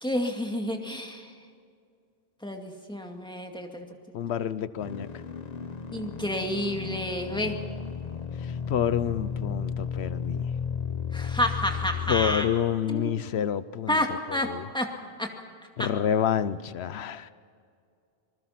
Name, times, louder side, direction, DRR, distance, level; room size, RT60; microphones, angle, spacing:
voice 1, 0.0-1.3 2.4-3.9 5.9-7.5 11.1-12.5 12.9-13.2 13.9-14.5 14.7-14.9 15.2-15.3 15.8-15.9, left 1 dB, 5° left, 2 dB, 2.2 m, -29 dB
voice 2, 4.1-5.1 8.4-10.5 12.1-14.0 14.3-14.7 15.8-17.3, left 9 dB, 85° left, 15 dB, 1.0 m, -28 dB
sound 1, 4.8-12.4, left 6 dB, 40° left, 1.0 m, -34 dB
26.5 x 20.0 x 5.8 m, 2.3 s
omnidirectional pair, 1.1 m